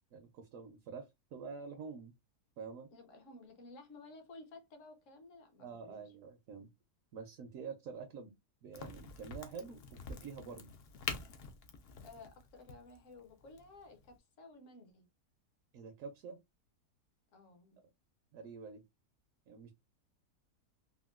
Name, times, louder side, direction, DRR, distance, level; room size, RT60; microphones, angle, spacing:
voice 1, 0.1-2.1 2.6-2.9 5.6-6.7 7.1-8.3 8.6-10.7 15.7-16.4 18.3-18.8 19.5-19.7, right 5 dB, 70° right, 0.9 m, -47 dB
voice 2, 2.9-6.1 12.0-15.1 17.3-17.8, left 3 dB, 60° left, 1.0 m, -55 dB
Crack, 8.7-14.2, left 5 dB, 80° left, 0.5 m, -46 dB
3.6 x 2.2 x 2.3 m
omnidirectional pair, 1.7 m